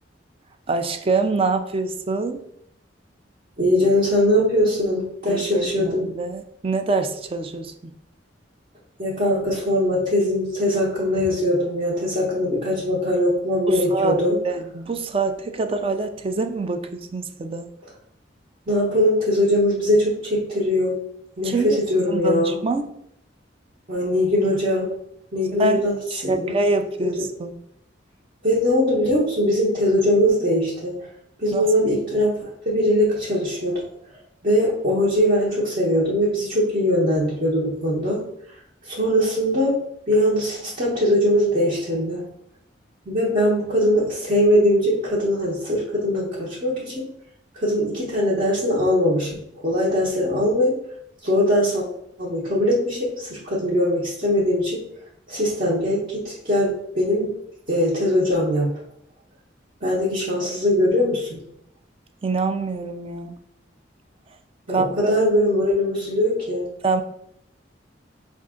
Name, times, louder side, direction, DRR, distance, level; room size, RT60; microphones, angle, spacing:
voice 1, 0.7-2.4 5.3-7.7 13.7-17.7 21.4-21.8 22.1-22.9 25.6-25.8 26.1-27.6 31.5-31.7 62.2-63.3 64.7-65.1 66.8-67.0, right 3 dB, 30° right, 7 dB, 0.4 m, -25 dB
voice 2, 3.6-6.1 9.0-14.4 18.7-21.0 21.4-22.6 23.9-24.9 25.3-25.9 26.2-26.5 28.4-31.0 31.4-33.8 34.4-38.2 38.8-39.8 40.1-42.2 43.1-47.1 47.5-50.8 51.2-51.8 52.2-54.8 55.3-57.3 57.7-58.7 59.8-61.4 64.7-66.7, left 1 dB, 45° right, -6 dB, 1.0 m, -21 dB
5.3 x 2.5 x 3.7 m, 0.74 s
head